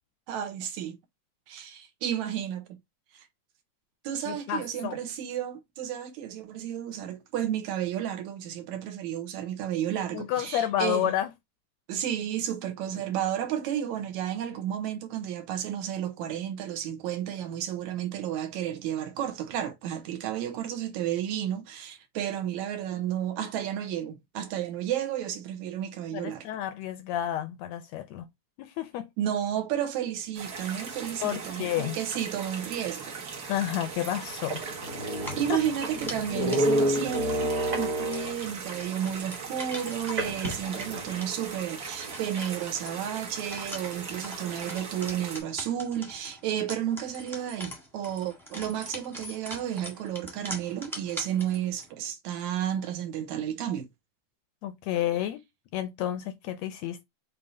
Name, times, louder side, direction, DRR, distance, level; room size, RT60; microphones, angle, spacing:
voice 1, 0.3-1.0 1.5-2.8 3.1-3.3 4.0-11.1 11.9-26.5 29.2-33.2 35.4-53.9, right 10 dB, 75° right, 2.2 m, -32 dB
voice 2, 4.3-5.0 10.1-11.3 26.1-28.3 28.6-29.1 31.2-32.0 33.5-34.6 35.5-35.6 54.6-55.4 55.7-57.0, left 12 dB, 75° left, 1.6 m, -30 dB
sound 1, 30.3-45.4, right 5 dB, 55° right, 1.0 m, -39 dB
sound 2, 33.5-33.6 34.1-34.2 34.4-38.5 40.2-41.3, right 1 dB, 40° right, 1.4 m, -29 dB
sound 3, 35.2-51.9, equal, ahead, 0.6 m, -44 dB
7.0 x 2.8 x 2.6 m
omnidirectional pair, 3.4 m